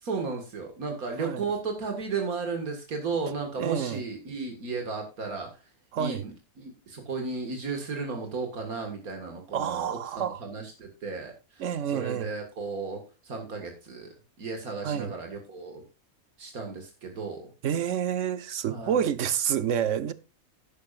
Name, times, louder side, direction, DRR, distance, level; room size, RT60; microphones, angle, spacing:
voice 1, 0.0-5.6 6.0-15.8 16.4-17.5 18.7-19.0, right 4 dB, 80° right, 2.3 m, -34 dB
voice 2, 3.6-4.0 5.9-6.3 9.5-10.4 11.6-12.3 14.8-15.1 17.6-20.1, right 9 dB, 60° right, 1.1 m, -28 dB
11.5 x 10.5 x 2.5 m
omnidirectional pair, 1.5 m